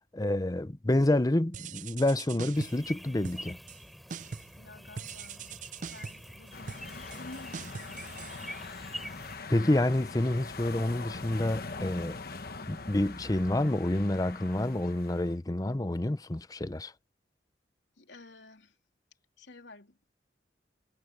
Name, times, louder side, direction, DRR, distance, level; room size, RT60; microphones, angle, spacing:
voice 1, 0.1-3.6 9.5-12.2 12.7-16.9, left 1 dB, 20° left, 0.6 m, -28 dB
sound 1, 1.5-2.9 3.2-3.8 4.1-4.6 5.0-9.0, right 6 dB, 45° right, 0.4 m, -43 dB
sound 2, 2.5-9.4, equal, ahead, 4.2 m, -46 dB
voice 2, 4.6-8.8 18.0-18.8 19.4-20.0, left 2 dB, 85° left, 3.4 m, -52 dB
sound 3, 6.5-15.4, left 3 dB, 55° left, 1.1 m, -42 dB
head